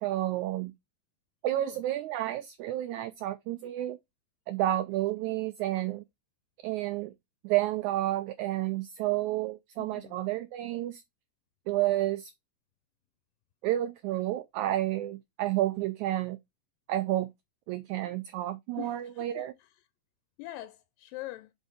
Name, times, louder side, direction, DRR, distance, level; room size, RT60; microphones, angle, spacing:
voice 1, 0.0-0.7 1.4-4.0 4.5-6.0 6.6-7.1 7.4-11.0 11.7-12.3 13.6-16.4 16.9-17.3 17.7-19.5, right 14 dB, 85° right, 1.7 m, -30 dB
voice 2, 9.8-10.2 18.8-19.7 20.4-21.5, left 17 dB, 85° left, 2.3 m, -43 dB
5.4 x 4.3 x 4.8 m
omnidirectional pair, 3.9 m